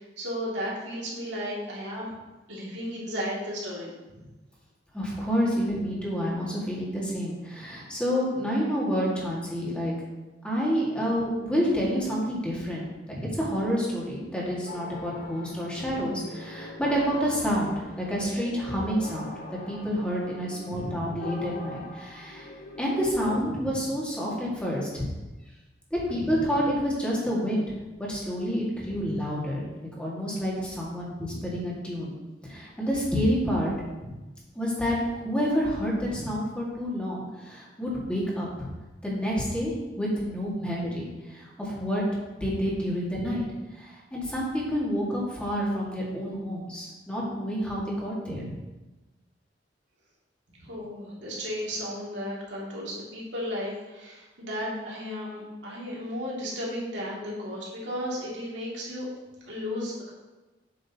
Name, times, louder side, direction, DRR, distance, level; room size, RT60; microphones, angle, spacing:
voice 1, 0.0-2.1 2.5-3.9 13.1-13.3 20.7-21.0 26.1-26.4 31.3-31.4 34.0-34.1 36.1-36.2 43.2-43.4 48.3-48.5 50.6-59.1 59.4-60.1, equal, 85° right, -5 dB, 2.4 m, -34 dB
voice 2, 4.9-9.9 10.4-22.5 22.8-25.0 25.9-29.7 30.0-32.1 32.4-33.7 34.6-38.7 39.0-39.7 40.0-42.0 42.4-43.4 43.7-48.5, equal, 5° left, -5 dB, 1.9 m, -29 dB
sound 1, 14.7-23.4, left 2 dB, 50° left, 0.9 m, -42 dB
8.0 x 6.3 x 2.9 m, 1.1 s
head